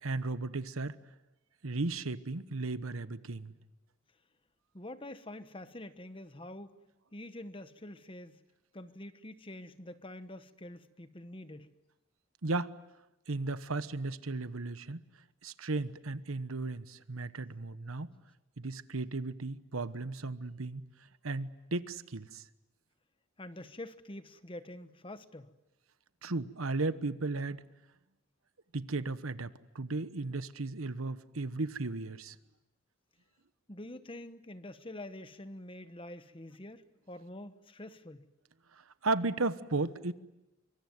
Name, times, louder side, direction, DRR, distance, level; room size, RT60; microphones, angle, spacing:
voice 1, 0.0-1.0 1.6-3.5 12.4-12.7 13.3-15.0 15.4-18.1 18.6-20.8 21.2-22.4 26.2-27.6 28.7-32.3 39.0-40.1, right 3 dB, 85° right, 14 dB, 1.1 m, -35 dB
voice 2, 4.7-6.8 7.1-8.4 8.7-11.7 23.4-25.5 33.7-38.3, left 1 dB, 25° left, 12 dB, 1.1 m, -46 dB
25.0 x 24.0 x 9.4 m, 0.97 s
head